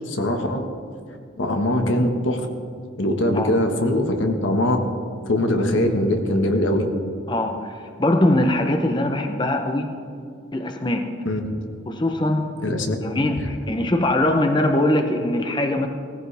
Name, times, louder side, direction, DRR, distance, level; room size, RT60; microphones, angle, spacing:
voice 1, 0.1-0.6 1.4-2.5 3.0-4.8 5.3-6.9 11.2-11.4 12.6-12.9, left 1 dB, 85° left, 4 dB, 1.5 m, -21 dB
voice 2, 7.3-9.9 10.5-11.1 11.9-12.5 13.0-15.9, left 1 dB, 25° left, 5 dB, 0.8 m, -22 dB
18.5 x 15.0 x 3.4 m, 2.3 s
head